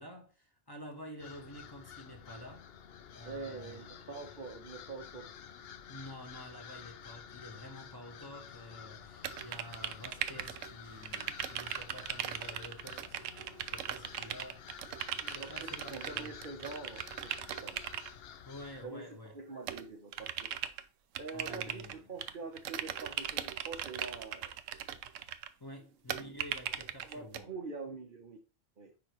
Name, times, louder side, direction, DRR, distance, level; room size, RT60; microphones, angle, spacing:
voice 1, 0.0-2.7 3.1-3.9 5.9-13.2 13.5-14.8 15.3-16.3 18.4-19.3 21.3-22.1 25.6-27.5, left 1 dB, 20° left, 1.5 m, -49 dB
sound 1, 1.2-18.8, left 8 dB, 60° left, 0.8 m, -51 dB
voice 2, 3.2-5.3 15.2-17.8 18.8-19.0 19.3-20.5 21.2-24.5 27.1-28.4 28.8-28.9, right 4 dB, 45° right, 1.0 m, -45 dB
sound 2, 9.2-10.7 11.0-18.1 19.7-20.8 21.1-22.3 22.6-25.5 26.1-27.4, right 10 dB, 85° right, 1.0 m, -39 dB
10.0 x 3.4 x 3.0 m
omnidirectional pair, 1.3 m